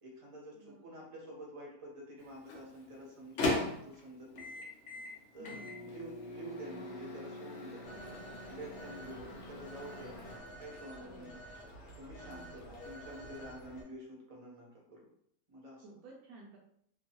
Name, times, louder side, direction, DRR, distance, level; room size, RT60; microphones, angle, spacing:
voice 1, 0.0-4.6 5.3-7.8 8.5-10.2 10.6-11.4 11.9-15.0 15.5-15.8, right 1 dB, 30° right, -3 dB, 0.7 m, -49 dB
voice 2, 0.5-1.0 5.4-5.9 7.9-8.2 8.5-9.4 11.0-11.5 12.2-12.6 15.8-16.6, right 2 dB, 80° right, -3 dB, 1.1 m, -55 dB
Microwave oven, 2.2-10.4, left 2 dB, 60° left, 0.9 m, -40 dB
Telephone, 7.8-13.8, equal, 75° left, 1.2 m, -50 dB
2.9 x 2.3 x 2.9 m, 0.69 s
omnidirectional pair, 1.6 m